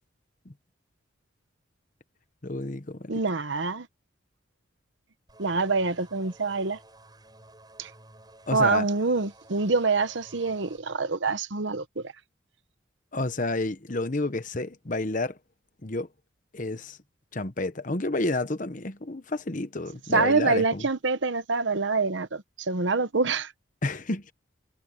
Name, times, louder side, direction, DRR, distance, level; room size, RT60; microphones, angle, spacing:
voice 1, 2.4-3.1 8.5-8.9 13.1-15.4 15.8-16.1 16.5-17.0 17.3-20.8 23.8-24.3, left 2 dB, 40° left, 1.1 m, -30 dB
voice 2, 3.1-3.9 5.4-6.8 7.8-7.9 8.5-12.1 20.1-23.5, right 4 dB, 65° right, 1.0 m, -26 dB
sound 1, 5.3-10.8, right 2 dB, 20° right, 7.8 m, -53 dB
head